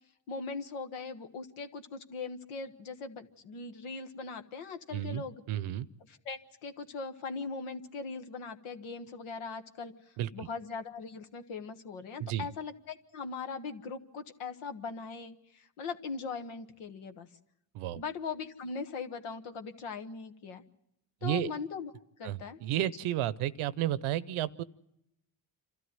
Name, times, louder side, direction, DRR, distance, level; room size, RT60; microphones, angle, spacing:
voice 1, 0.3-5.4 6.1-9.9 10.3-17.3 18.0-20.6 21.2-21.9 22.2-22.6, left 4 dB, 85° left, 8 dB, 1.4 m, -40 dB
voice 2, 4.9-5.9 10.2-10.5 12.2-12.5 17.7-18.0 21.2-21.5 22.2-24.6, right 12 dB, 85° right, 18 dB, 0.8 m, -32 dB
27.0 x 13.0 x 9.4 m, 0.83 s
supercardioid pair, 55°, 48 cm